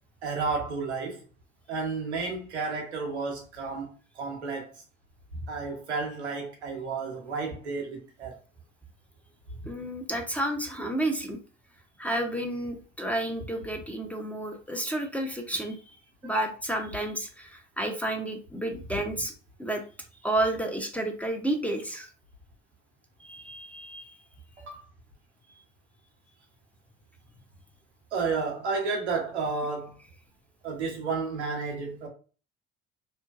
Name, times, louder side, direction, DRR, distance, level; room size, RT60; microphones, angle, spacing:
voice 1, 0.2-1.2 1.7-4.7 5.5-8.3 16.2-16.5 24.6-24.8 28.1-30.0 30.6-32.1, right 4 dB, 90° right, 0.8 m, -31 dB
voice 2, 9.7-11.4 12.0-15.9 16.2-19.3 19.6-19.8 20.2-22.1 23.2-24.1, right 1 dB, 5° left, 0.7 m, -31 dB
2.6 x 2.2 x 2.4 m
hypercardioid pair, 60°, 33 cm